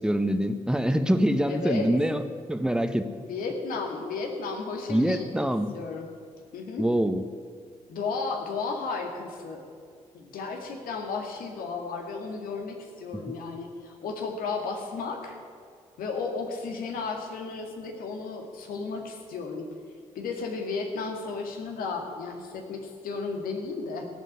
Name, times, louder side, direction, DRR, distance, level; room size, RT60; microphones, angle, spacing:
voice 1, 0.0-3.1 4.9-5.7 6.8-7.2, equal, 5° right, 9 dB, 1.3 m, -25 dB
voice 2, 1.5-1.9 3.2-5.5 5.7-6.1 6.5-6.9 7.9-9.7 10.1-15.4 16.0-19.7 20.2-24.1, left 4 dB, 75° left, 3 dB, 2.1 m, -34 dB
17.0 x 7.6 x 9.8 m, 2.2 s
hypercardioid pair, 40°, 15 cm